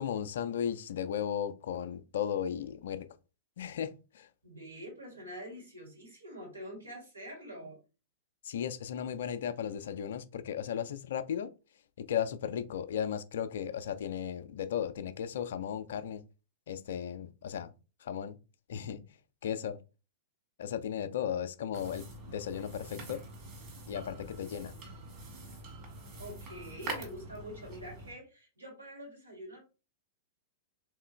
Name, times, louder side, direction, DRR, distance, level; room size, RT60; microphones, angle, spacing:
voice 1, 0.0-3.1 3.6-4.3 8.4-11.5 12.0-16.2 16.7-17.7 18.0-18.4 18.7-19.0 19.4-19.8 20.6-23.2 23.9-24.7, left 9 dB, 60° left, 0.4 m, -35 dB
voice 2, 4.4-7.8 26.2-29.6, equal, 80° right, 2.5 m, -46 dB
sound 1, 21.7-28.1, right 2 dB, 30° right, 1.9 m, -45 dB
3.6 x 3.2 x 3.3 m
figure-of-eight pair, 100°, 0 cm